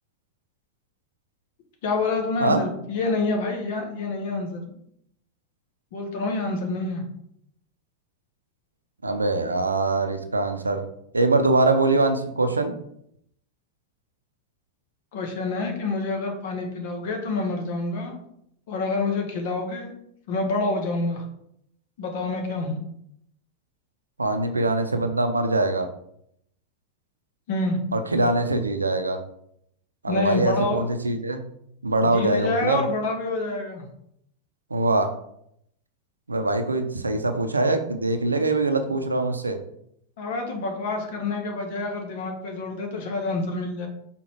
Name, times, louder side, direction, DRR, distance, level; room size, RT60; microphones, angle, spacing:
voice 1, 1.8-4.6 5.9-7.0 15.1-18.1 18.7-19.9 20.3-21.2 22.0-22.8 27.5-27.8 30.1-30.9 32.0-33.9 40.2-43.9, left 3 dB, 50° left, 2 dB, 1.6 m, -27 dB
voice 2, 9.0-10.8 11.1-12.7 24.2-25.9 27.9-29.2 30.0-31.4 31.8-32.8 34.7-35.1 36.3-39.6, right 2 dB, 80° right, 7 dB, 0.7 m, -23 dB
5.9 x 3.8 x 4.7 m, 0.73 s
figure-of-eight pair, 90°, 0 cm